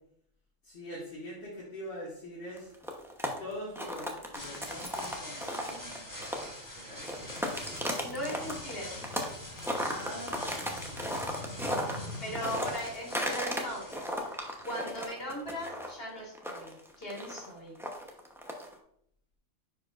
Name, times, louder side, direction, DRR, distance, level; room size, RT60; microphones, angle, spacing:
voice 1, 0.6-2.7 3.4-7.8 9.7-12.2 15.3-15.5, left 1 dB, 70° left, -7 dB, 2.0 m, -45 dB
sound 1, 2.6-6.7 7.0-9.3 9.6-13.6 13.9-18.7, equal, ahead, 0.7 m, -35 dB
sound 2, 4.3-15.0, left 1 dB, 15° left, 1.3 m, -45 dB
sound 3, 7.1-12.7, left 2 dB, 70° right, 1.7 m, -45 dB
voice 2, 8.0-9.3 12.2-17.7, equal, 45° left, -4 dB, 2.6 m, -39 dB
9.9 x 4.8 x 2.5 m, 0.70 s
omnidirectional pair, 1.3 m